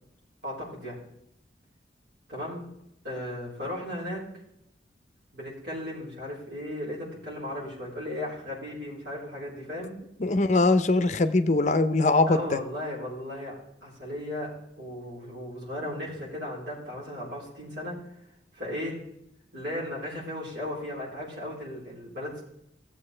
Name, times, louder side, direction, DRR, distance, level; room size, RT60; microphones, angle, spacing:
voice 1, 0.4-1.0 2.3-2.6 3.0-4.2 5.3-9.9 12.3-13.5 13.8-18.0 18.5-19.0 19.5-22.4, left 1 dB, 70° right, -4 dB, 3.9 m, -36 dB
voice 2, 10.2-12.6, left 2 dB, 40° left, 10 dB, 0.5 m, -22 dB
15.5 x 7.5 x 3.3 m, 0.81 s
head